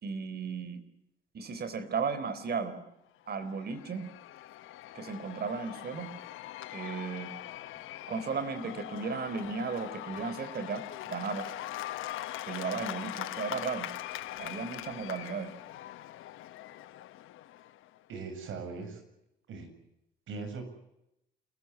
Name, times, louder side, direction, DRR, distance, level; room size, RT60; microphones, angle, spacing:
voice 1, 0.0-0.8 1.3-2.8 3.3-4.1 4.9-6.1 6.7-7.3 8.1-11.5 12.5-13.9 14.4-15.5, right 5 dB, 55° right, 11 dB, 3.9 m, -35 dB
Cheering / Applause / Crowd, 3.3-18.0, left 14 dB, 85° left, 1.1 m, -42 dB
voice 2, 18.1-19.0 19.5-19.7 20.3-20.7, right 4 dB, 75° right, 7 dB, 7.3 m, -40 dB
28.5 x 15.5 x 9.6 m, 0.85 s
cardioid pair, 90°, 20 cm